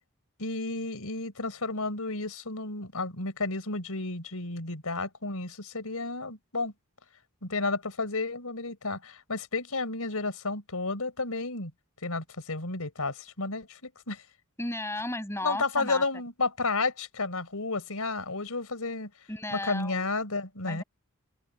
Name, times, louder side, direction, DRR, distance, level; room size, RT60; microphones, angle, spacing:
voice 1, 0.4-6.7 7.4-11.7 12.0-14.2 15.4-19.1 19.5-20.8, left 3 dB, 75° left, 4.3 m, -32 dB
voice 2, 14.6-16.0 19.3-20.1 20.7-20.8, left 1 dB, 10° left, 6.7 m, -34 dB
head